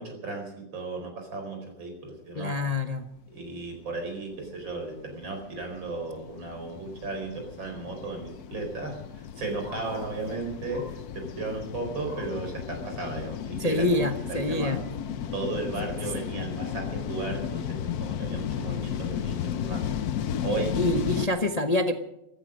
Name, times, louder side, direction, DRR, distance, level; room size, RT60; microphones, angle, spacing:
voice 1, 0.0-2.6 3.3-14.7 15.3-19.8 20.4-20.8, right 3 dB, 90° right, 2 dB, 5.3 m, -35 dB
voice 2, 2.4-3.1 13.6-14.8 20.8-21.9, left 2 dB, 30° left, 6 dB, 0.7 m, -26 dB
sound 1, 3.5-21.3, left 9 dB, 60° left, 1.1 m, -34 dB
Bark, 9.6-10.2 10.6-11.1 11.4-12.4 12.9-13.0 13.4-13.5 14.2-14.3, equal, 5° left, 7.5 m, -48 dB
15.0 x 14.5 x 6.4 m, 0.85 s
omnidirectional pair, 2.0 m